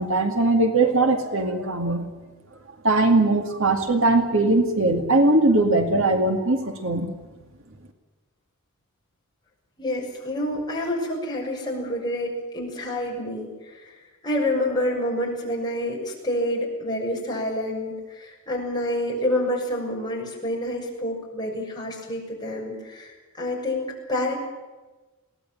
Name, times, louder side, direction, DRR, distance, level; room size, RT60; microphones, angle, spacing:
voice 1, 0.0-2.0 2.8-7.1, right 2 dB, 60° right, 5 dB, 2.3 m, -20 dB
voice 2, 9.8-13.9 14.2-24.4, left 1 dB, 20° left, -2 dB, 6.8 m, -28 dB
22.5 x 18.0 x 8.9 m, 1.2 s
head